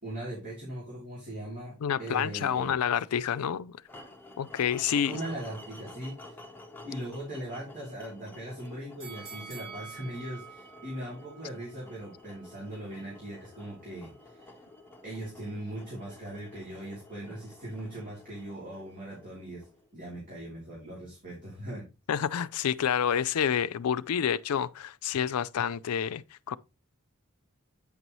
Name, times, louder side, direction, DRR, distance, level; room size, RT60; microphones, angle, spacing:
voice 1, 0.0-2.7 5.1-6.4 6.8-14.5 15.0-19.7 19.9-21.9, right 1 dB, 35° right, 2.9 m, -40 dB
voice 2, 1.8-3.8 4.4-5.2 22.1-26.6, left 8 dB, 90° left, 0.4 m, -28 dB
sound 1, 3.9-20.0, left 2 dB, 10° left, 0.8 m, -50 dB
sound 2, 9.0-12.1 12.5-12.6, right 6 dB, 60° right, 3.6 m, -47 dB
8.5 x 5.4 x 3.0 m
head